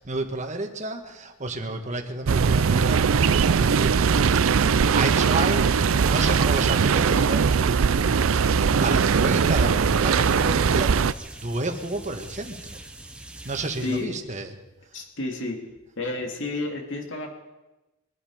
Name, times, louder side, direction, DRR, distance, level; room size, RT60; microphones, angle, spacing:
voice 1, 0.0-3.0 3.6-3.9 4.9-5.8 6.0-7.5 8.8-11.0 11.4-12.8 13.4-14.5, right 2 dB, 35° right, 5 dB, 1.5 m, -30 dB
sound 1, 2.3-11.1, right 6 dB, 80° right, 0.5 m, -20 dB
sound 2, 8.8-14.0, right 1 dB, 5° right, 0.9 m, -43 dB
voice 2, 13.8-14.1 14.9-15.6 16.0-17.3, left 2 dB, 60° left, 2 dB, 2.7 m, -30 dB
23.0 x 10.5 x 5.0 m, 1.0 s
head